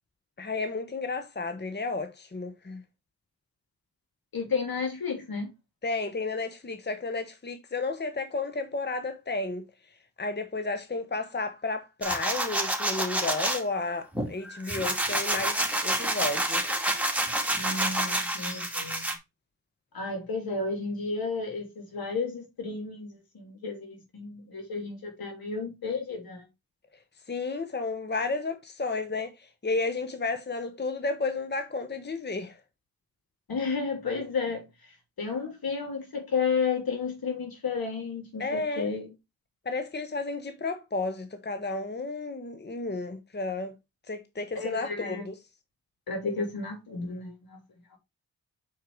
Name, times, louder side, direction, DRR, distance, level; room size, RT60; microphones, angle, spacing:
voice 1, 0.4-2.8 5.8-9.6 10.2-16.7 27.3-32.6 38.4-38.9 39.6-43.7 44.1-45.3, left 3 dB, 25° left, 1.1 m, -32 dB
voice 2, 4.3-5.5 17.6-19.1 19.9-26.5 33.5-34.7 35.2-39.1 44.5-45.2 46.1-47.6, left 4 dB, 65° left, 2.9 m, -32 dB
sound 1, 12.0-13.6 14.1-19.2, right 1 dB, 5° right, 2.1 m, -28 dB
6.6 x 4.6 x 4.5 m
supercardioid pair, 40°, 39 cm